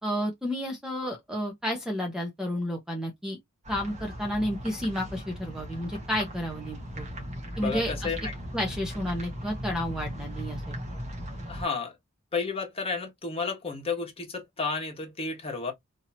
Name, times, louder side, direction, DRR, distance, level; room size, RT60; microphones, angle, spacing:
voice 1, 0.0-3.4 3.7-7.1 7.6-8.1 8.5-10.7, equal, 5° right, 1.0 m, -31 dB
sound 1, 3.6-11.6, equal, 35° right, 1.6 m, -38 dB
voice 2, 7.6-8.3 11.5-11.9 12.3-15.7, left 4 dB, 25° left, 1.4 m, -32 dB
3.7 x 2.9 x 2.8 m
head